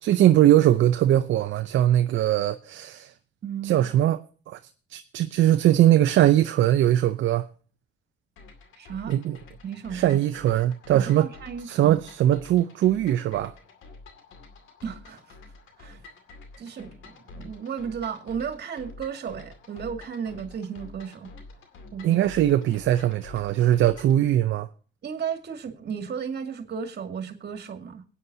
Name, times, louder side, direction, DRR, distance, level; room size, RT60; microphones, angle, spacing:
voice 1, 0.0-3.1 3.6-4.2 4.5-4.6 4.9-7.5 9.1-9.4 9.9-11.3 11.6-13.5 22.0-24.7, right 12 dB, 75° right, 0.6 m, -21 dB
voice 2, 3.4-3.8 8.8-9.1 9.6-10.2 10.9-12.0 14.8-15.4 15.8-16.0 16.6-21.3 21.9-22.3 25.0-28.0, right 7 dB, 55° right, 2.2 m, -34 dB
sound 1, 8.4-24.2, left 3 dB, 80° left, 2.4 m, -48 dB
22.0 x 9.5 x 2.8 m
cardioid pair, 90°, 20 cm